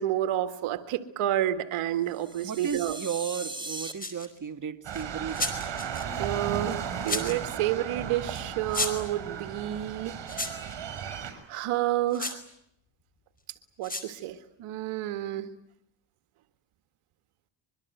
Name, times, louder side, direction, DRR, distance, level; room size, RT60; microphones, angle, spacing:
voice 1, 0.0-3.0 6.2-10.1 11.5-12.4 13.8-15.5, right 12 dB, 90° right, 9 dB, 1.8 m, -30 dB
sound 1, 2.1-3.9, right 2 dB, 10° right, 4.2 m, -39 dB
voice 2, 2.4-5.8, right 7 dB, 40° right, 7 dB, 2.0 m, -35 dB
sound 2, 4.0-4.4 4.9-6.0 6.7-7.4 8.3-8.4 8.7-9.1 10.3-10.7 12.1-12.4 13.8-14.1, left 2 dB, 15° left, 4.8 m, -33 dB
sound 3, 4.8-11.3, right 8 dB, 60° right, 7.1 m, -35 dB
24.5 x 23.0 x 9.3 m, 0.77 s
cardioid pair, 85°, 49 cm